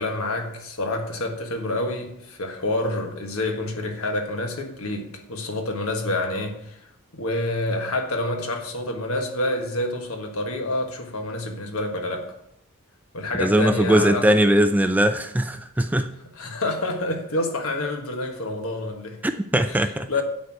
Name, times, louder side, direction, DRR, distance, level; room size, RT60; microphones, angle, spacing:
voice 1, 0.0-6.8 7.1-12.3 13.1-14.4 16.3-19.2 19.7-20.2, left 2 dB, 65° left, 1.5 m, -28 dB
voice 2, 13.4-16.1 19.2-20.1, right 1 dB, 5° right, 0.3 m, -20 dB
9.5 x 4.6 x 7.5 m
head